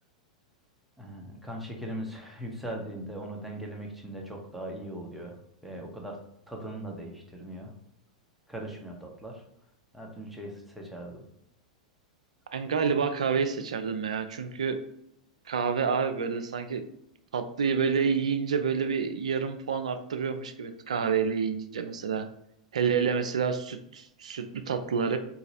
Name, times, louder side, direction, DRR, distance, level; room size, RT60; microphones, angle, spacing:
voice 1, 1.0-5.4 5.6-6.2 6.5-7.7 8.5-9.4 9.9-11.2, right 1 dB, 5° right, 0 dB, 0.9 m, -39 dB
voice 2, 12.5-14.8 15.5-16.8 17.3-22.3 22.7-25.2, right 6 dB, 70° right, 8 dB, 0.4 m, -28 dB
4.0 x 2.8 x 2.7 m, 0.78 s
figure-of-eight pair, 95°, 4 cm